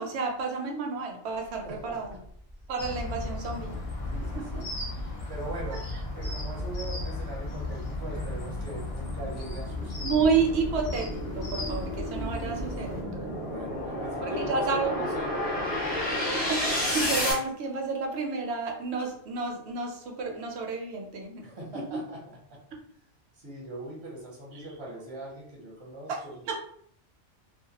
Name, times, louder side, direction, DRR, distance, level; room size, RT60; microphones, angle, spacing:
voice 1, 0.0-2.2 2.7-3.8 4.4-4.6 5.6-5.8 10.0-13.1 14.2-15.1 16.5-21.5 21.7-21.8 24.5-24.7 26.1-26.6, right 4 dB, 70° right, 1 dB, 0.8 m, -31 dB
voice 2, 1.6-2.0 4.1-4.7 5.3-5.8 6.1-10.0 13.4-16.3 21.4-22.2 22.5-22.6 23.4-26.3, right 1 dB, 30° right, -4 dB, 0.6 m, -40 dB
sound 1, 2.6-2.7 3.2-17.3, left 1 dB, 10° left, 0.7 m, -33 dB
sound 2, 2.8-13.0, left 2 dB, 55° left, 0.4 m, -35 dB
2.2 x 2.1 x 2.8 m, 0.64 s
omnidirectional pair, 1.2 m